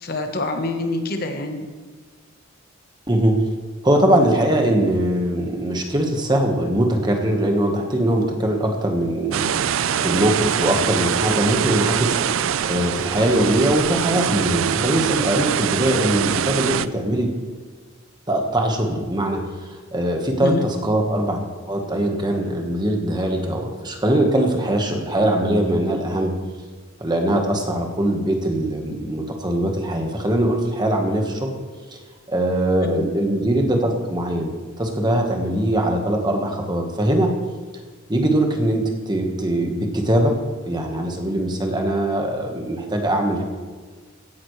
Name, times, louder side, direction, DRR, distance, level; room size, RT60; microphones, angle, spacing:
voice 1, 0.0-1.7 20.4-20.7 32.8-33.0, left 2 dB, 45° left, 5 dB, 1.1 m, -26 dB
voice 2, 3.8-17.3 18.3-21.4 21.7-26.3 27.0-31.5 31.9-32.0 32.3-37.3 38.1-40.3 40.6-43.4, right 1 dB, 20° right, 2 dB, 1.4 m, -21 dB
sound 1, 9.3-16.9, right 8 dB, 70° right, 0.4 m, -23 dB
16.0 x 11.5 x 3.2 m, 1.4 s
head